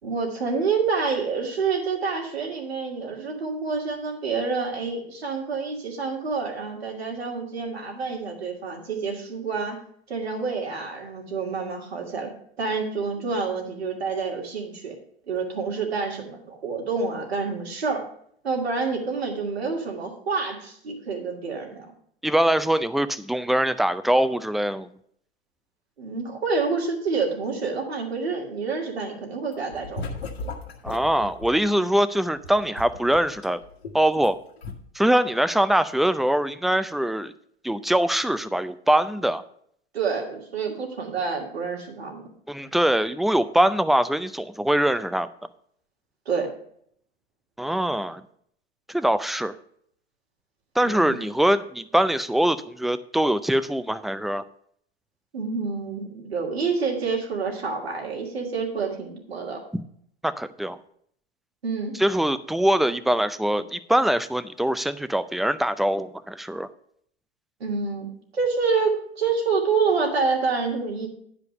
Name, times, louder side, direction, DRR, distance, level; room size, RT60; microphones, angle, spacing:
voice 1, 0.0-9.8 10.1-12.3 12.6-15.0 15.3-18.1 18.4-21.9 26.0-30.0 39.9-42.3 46.3-46.5 50.8-51.1 55.3-59.6 61.6-61.9 67.6-68.1 68.3-71.1, right 4 dB, 85° right, 0 dB, 2.4 m, -28 dB
voice 2, 22.2-24.9 30.8-33.6 33.9-34.4 34.9-37.3 37.6-39.4 42.5-45.3 47.6-48.2 48.9-49.5 50.8-54.4 59.7-59.8 60.2-60.8 62.0-66.7, right 1 dB, ahead, 13 dB, 0.4 m, -23 dB
sound 1, 29.5-31.6 32.3-34.3 34.6-34.7, left 3 dB, 80° left, 1.5 m, -36 dB
10.5 x 5.0 x 6.6 m, 0.65 s
hypercardioid pair, 85°, 30 cm